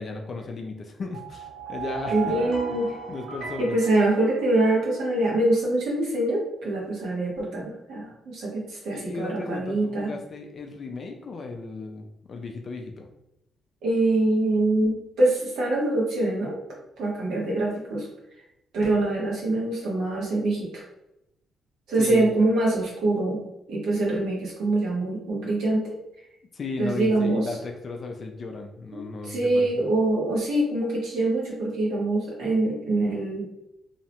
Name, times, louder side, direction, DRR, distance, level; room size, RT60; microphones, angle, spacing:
voice 1, 0.0-2.4 2.7-2.8 3.1-3.7 8.9-13.1 22.0-22.4 26.5-29.7, left 3 dB, 45° left, 3 dB, 0.3 m, -35 dB
sound 1, 1.1-5.0, right 5 dB, 65° right, 1.1 m, -36 dB
voice 2, 2.1-2.9 3.6-10.1 13.8-16.5 17.0-18.1 18.7-20.8 21.9-23.4 23.7-25.9 26.8-27.5 28.9-33.4, right 2 dB, 90° right, -4 dB, 0.9 m, -24 dB
2.7 x 2.1 x 2.8 m, 0.85 s
cardioid pair, 125°, 0 cm